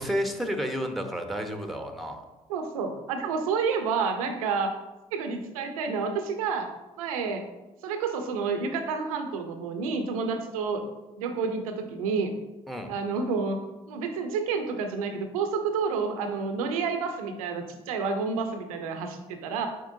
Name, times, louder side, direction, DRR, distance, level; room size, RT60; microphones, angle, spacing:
voice 1, 0.0-2.2 12.7-12.9, equal, ahead, 5 dB, 1.0 m, -31 dB
voice 2, 2.5-4.7 5.1-6.7 7.0-7.4 7.8-10.8 11.2-12.3 12.9-13.6 13.9-19.7, right 5 dB, 80° right, 6 dB, 0.8 m, -29 dB
7.4 x 4.8 x 2.7 m, 1.1 s
hypercardioid pair, 50°, 18 cm